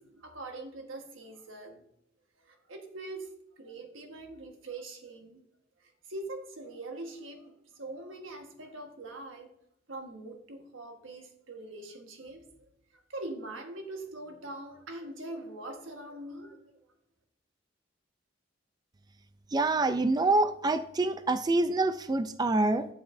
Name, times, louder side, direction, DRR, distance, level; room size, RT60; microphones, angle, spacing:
voice 1, 0.0-1.8 2.4-5.4 5.8-9.5 9.9-16.6, right 2 dB, 90° right, 4 dB, 1.4 m, -43 dB
voice 2, 19.5-22.9, right 2 dB, 20° right, 10 dB, 0.3 m, -26 dB
12.0 x 7.1 x 2.6 m, 0.80 s
head